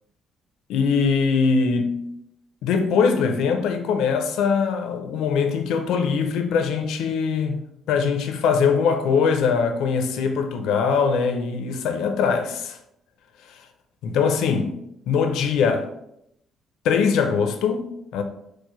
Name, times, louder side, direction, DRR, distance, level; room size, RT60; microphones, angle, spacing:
voice 1, 0.7-2.1 2.6-12.8 14.0-14.8 15.1-15.9 16.8-18.2, left 5 dB, 85° left, 0.5 m, -22 dB
4.6 x 2.1 x 3.0 m
cardioid pair, 145°, 0 cm